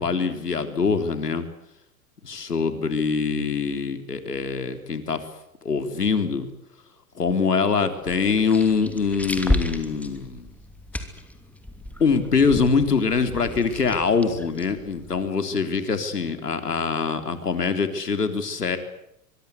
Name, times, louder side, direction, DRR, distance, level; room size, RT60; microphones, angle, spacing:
voice 1, 0.0-1.5 2.2-5.2 5.6-6.5 7.1-10.5 12.0-18.8, left 5 dB, 85° left, 8 dB, 3.5 m, -24 dB
sound 1, 8.0-15.3, left 1 dB, 5° left, 2.9 m, -33 dB
24.0 x 23.5 x 8.2 m, 0.78 s
hypercardioid pair, 105°, 46 cm